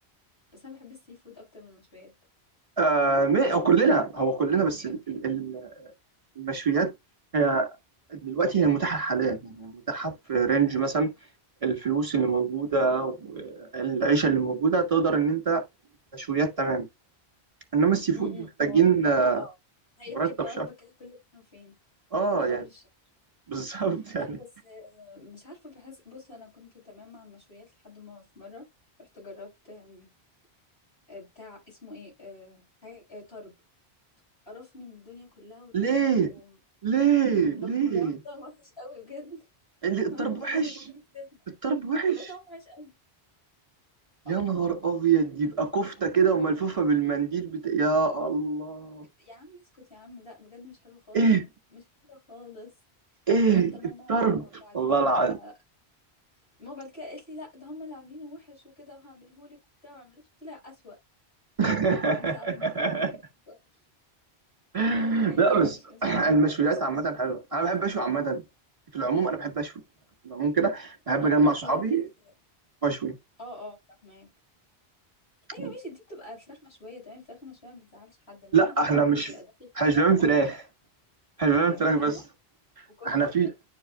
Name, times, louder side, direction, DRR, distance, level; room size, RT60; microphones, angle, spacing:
voice 1, 0.5-2.1 3.5-3.6 4.8-5.0 18.1-18.9 19.2-19.5 20.0-21.7 22.2-22.8 23.9-28.6 29.0-30.1 31.1-33.5 34.5-35.8 36.0-36.6 37.5-39.5 40.1-41.4 42.1-42.9 44.3-44.4 49.2-51.3 51.7-51.8 52.1-52.7 53.5-55.5 56.6-61.0 62.0-62.7 63.5-63.6 65.3-67.0 71.2-72.0 73.4-74.3 75.5-80.6 81.7-82.2 83.0-83.3, left 2 dB, 70° left, 6.1 m, -46 dB
voice 2, 2.8-5.9 6.4-6.9 7.3-7.7 8.1-11.1 11.6-15.6 16.1-16.9 17.7-19.4 20.2-20.3 20.6-20.7 22.1-22.6 23.5-24.4 35.7-36.3 36.8-38.2 39.8-40.7 41.6-42.1 44.3-49.1 51.1-51.4 53.3-53.8 54.1-54.4 54.7-55.4 61.6-63.1 64.7-68.4 68.9-69.7 70.3-72.0 72.8-73.2 75.6-75.7 78.5-79.3 79.8-80.6 81.4-82.1 83.1-83.5, right 5 dB, 30° right, 1.9 m, -24 dB
11.0 x 4.7 x 2.4 m
omnidirectional pair, 1.1 m